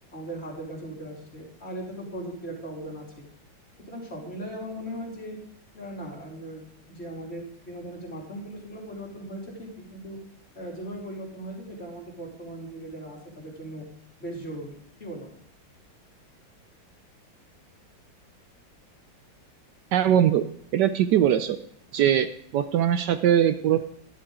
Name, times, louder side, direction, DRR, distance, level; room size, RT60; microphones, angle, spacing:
voice 1, 0.1-3.3 3.9-5.4 5.7-10.2 10.5-13.8 14.2-15.3, right 1 dB, 35° left, -2 dB, 3.2 m, -38 dB
voice 2, 19.9-20.4 20.7-21.6 21.9-22.3 22.5-23.8, right 10 dB, 75° right, 10 dB, 1.1 m, -21 dB
12.5 x 11.5 x 3.7 m, 0.66 s
omnidirectional pair, 2.0 m